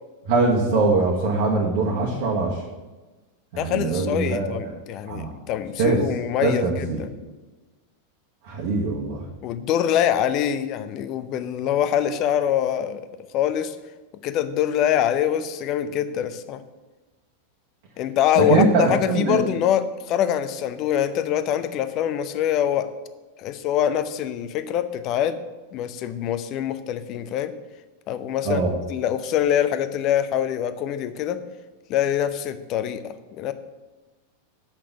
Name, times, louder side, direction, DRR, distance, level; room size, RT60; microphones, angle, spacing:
voice 1, 0.3-2.6 3.5-4.8 5.1-5.3 5.8-6.0 6.4-7.0 8.4-9.2 18.3-19.4 28.4-28.7, right 3 dB, 50° right, -2 dB, 1.4 m, -22 dB
voice 2, 3.6-7.1 9.4-13.0 13.3-13.8 14.2-16.6 18.0-22.9 23.4-25.4 25.7-27.5 28.1-28.6 28.9-31.4 31.9-33.0 33.4-33.5, left 10 dB, 40° left, 11 dB, 0.6 m, -24 dB
6.6 x 5.9 x 6.9 m, 1.2 s
figure-of-eight pair, 90°, 0 cm